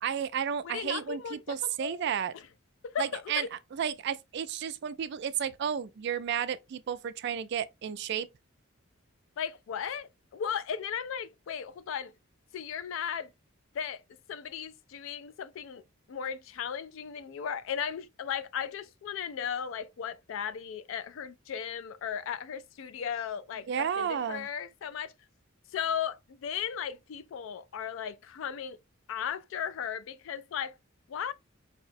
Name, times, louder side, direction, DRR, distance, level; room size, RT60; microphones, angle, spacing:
voice 1, 0.0-2.3 3.0-3.5 3.7-8.3 23.7-24.5, right 8 dB, 55° right, 0.3 m, -32 dB
voice 2, 0.6-2.0 2.3-2.5 2.8-3.5 9.4-12.1 12.5-13.3 13.7-14.0 14.3-15.8 16.1-25.1 25.7-28.8 29.1-30.8 31.1-31.3, left 8 dB, 65° left, 0.3 m, -36 dB
4.7 x 2.1 x 2.5 m
head